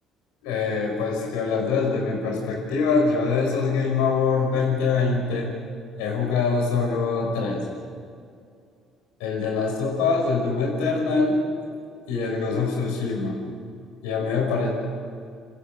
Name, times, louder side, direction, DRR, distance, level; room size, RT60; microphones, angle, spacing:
voice 1, 0.4-5.5 6.0-7.6 9.2-11.4 12.1-13.4 14.0-14.7, left 4 dB, 80° left, 0 dB, 5.7 m, -24 dB
29.0 x 15.0 x 6.9 m, 2.3 s
hypercardioid pair, 55°, 0 cm